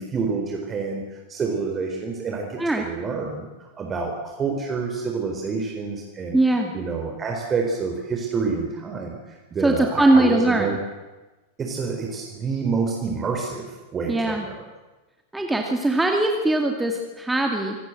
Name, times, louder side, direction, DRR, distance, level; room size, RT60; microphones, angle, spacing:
voice 1, 0.0-3.5 3.7-6.4 6.7-10.8 11.6-14.6, right 4 dB, 20° right, 1 dB, 4.1 m, -28 dB
voice 2, 6.3-6.7 9.6-10.8 14.1-14.5 15.3-17.8, right 2 dB, 5° right, 3 dB, 2.5 m, -21 dB
26.0 x 18.5 x 8.0 m, 1.2 s
figure-of-eight pair, 90°, 0 cm